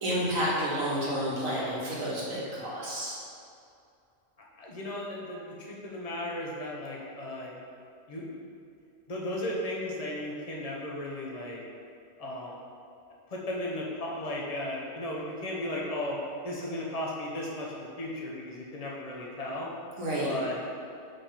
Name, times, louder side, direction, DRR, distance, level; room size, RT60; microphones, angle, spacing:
voice 1, 0.0-3.1 20.0-20.3, equal, 85° right, -7 dB, 1.9 m, -30 dB
voice 2, 4.6-7.5 8.1-8.4 9.1-11.6 12.2-12.6 13.3-16.2 16.4-19.7 20.2-20.6, left 1 dB, 30° left, -3 dB, 0.9 m, -35 dB
5.3 x 3.5 x 5.6 m, 2.5 s
omnidirectional pair, 1.4 m